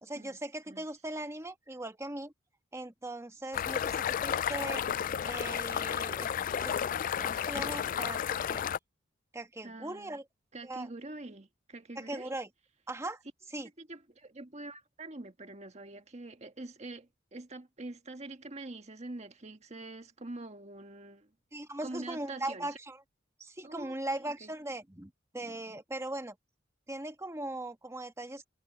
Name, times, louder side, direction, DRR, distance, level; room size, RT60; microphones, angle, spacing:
voice 1, 0.0-2.3 2.7-4.8 5.2-6.3 6.6-6.7 7.2-8.6 9.3-10.2 10.6-10.9 12.0-12.5 12.9-13.2 13.5-13.7 21.5-23.0 23.4-26.4 26.9-28.5, right 1 dB, 15° right, 1.5 m, -39 dB
sound 1, 3.5-8.8, left 8 dB, 45° left, 0.3 m, -32 dB
voice 2, 9.6-10.2 10.5-12.3 13.8-21.3 21.8-22.8 23.6-24.5, right 2 dB, 35° right, 1.6 m, -45 dB
head